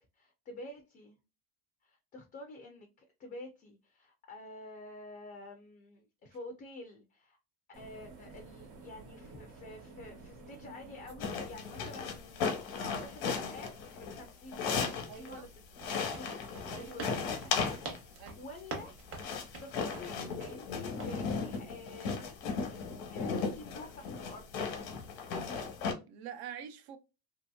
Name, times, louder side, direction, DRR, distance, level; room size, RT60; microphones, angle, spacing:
voice 1, 0.2-1.2 1.8-7.4 7.8-15.5 15.9-17.7 18.4-19.0 19.6-22.8 23.1-24.7, left 2 dB, 25° left, 0.4 m, -49 dB
sound 1, 7.7-12.5, right 3 dB, 55° right, 1.2 m, -52 dB
sound 2, 11.2-15.4 15.8-18.1 18.8-25.9, left 5 dB, 80° left, 1.1 m, -36 dB
voice 2, 15.1-15.5 16.7-17.1 18.2-18.4 26.0-27.0, right 8 dB, 70° right, 0.6 m, -46 dB
sound 3, 15.8-20.6 21.0-21.2, right 3 dB, 40° right, 0.9 m, -46 dB
2.9 x 2.8 x 2.3 m
cardioid pair, 160°, 37 cm